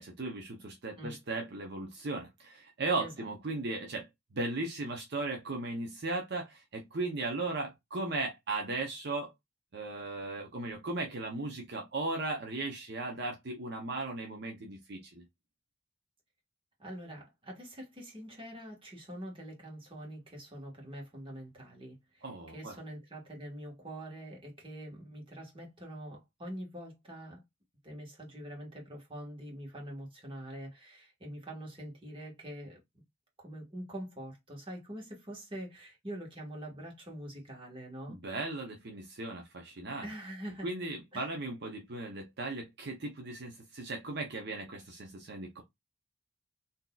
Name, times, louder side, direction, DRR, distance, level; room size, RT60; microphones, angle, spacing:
voice 1, 0.0-9.3 9.7-15.2 22.2-22.8 38.1-40.1 40.6-45.6, right 2 dB, 55° right, 0.7 m, -37 dB
voice 2, 16.8-27.4 27.8-32.8 33.4-38.2 40.0-40.7 41.1-41.3, right 1 dB, 25° right, 1.4 m, -44 dB
3.8 x 2.8 x 2.3 m
head